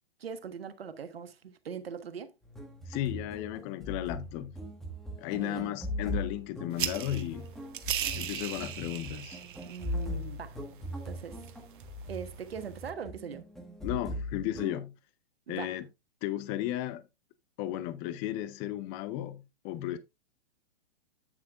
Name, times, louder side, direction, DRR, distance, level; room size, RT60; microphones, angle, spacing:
voice 1, 0.2-2.3 5.4-5.7 9.6-10.6 11.0-11.5 12.1-13.5 15.5-15.8, right 7 dB, 70° right, 1.4 m, -41 dB
sound 1, 2.4-14.8, left 1 dB, ahead, 1.5 m, -40 dB
voice 2, 2.9-4.6 5.2-7.5 8.1-9.4 13.8-14.9 15.5-15.9 16.2-17.0 17.6-20.0, left 13 dB, 20° left, 0.4 m, -34 dB
sound 2, 6.7-12.9, right 10 dB, 55° right, 1.1 m, -39 dB
8.8 x 7.7 x 2.5 m
figure-of-eight pair, 120°, 31 cm